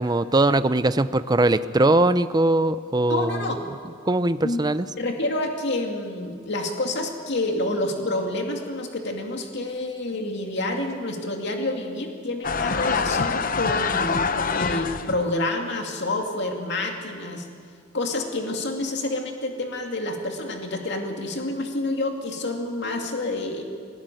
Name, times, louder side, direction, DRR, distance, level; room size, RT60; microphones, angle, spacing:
voice 1, 0.0-3.6 4.1-4.9, right 2 dB, 20° right, 12 dB, 0.6 m, -21 dB
voice 2, 3.1-3.6 4.4-4.6 5.0-17.5 17.9-23.6, left 2 dB, 60° left, 2 dB, 2.5 m, -28 dB
sound 1, 12.4-15.2, left 5 dB, 45° left, 0.8 m, -25 dB
21.5 x 19.5 x 9.2 m, 2.1 s
head